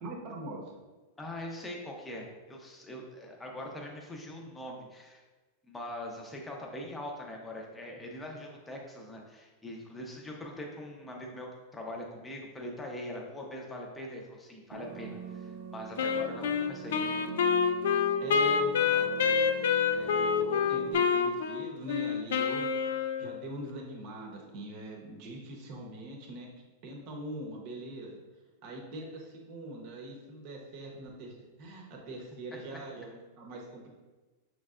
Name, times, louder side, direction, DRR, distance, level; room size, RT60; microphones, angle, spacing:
voice 1, 0.0-0.7 18.2-22.9 23.2-26.5 26.8-28.1 28.6-33.9, right 1 dB, 45° right, -1 dB, 0.9 m, -43 dB
voice 2, 1.2-5.2 5.6-17.2, left 1 dB, 10° left, 0 dB, 0.6 m, -42 dB
sound 1, 14.7-20.9, right 4 dB, 75° right, 0.7 m, -42 dB
Wind instrument woodwind instrument, 16.0-23.5, left 6 dB, 85° left, 0.3 m, -27 dB
6.4 x 3.2 x 2.4 m, 1.2 s
supercardioid pair, 160°, 0 cm